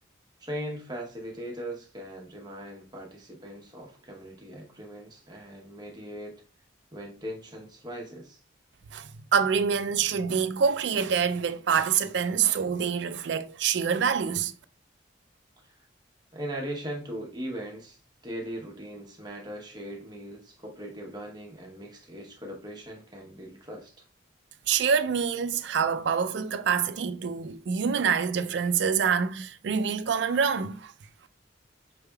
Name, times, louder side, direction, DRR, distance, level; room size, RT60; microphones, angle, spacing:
voice 1, 0.4-6.4 6.9-8.4 15.6-15.9 16.3-18.0 18.2-24.0, equal, 20° right, 0.9 m, -39 dB
voice 2, 8.9-14.5 24.7-30.9, right 6 dB, 65° right, 0.4 m, -26 dB
5.4 x 3.3 x 2.3 m
head